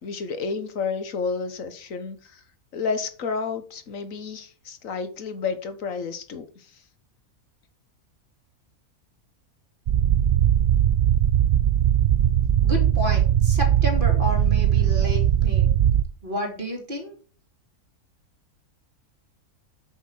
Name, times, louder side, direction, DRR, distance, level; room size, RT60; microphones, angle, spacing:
voice 1, 0.0-2.4 2.7-6.8, left 5 dB, 60° left, 10 dB, 1.6 m, -31 dB
sound 1, 9.9-16.0, right 10 dB, 60° right, 0.6 m, -20 dB
voice 2, 12.6-15.7 16.2-17.2, left 1 dB, 35° right, 0 dB, 3.4 m, -31 dB
8.3 x 6.4 x 6.5 m, 0.40 s
omnidirectional pair, 1.6 m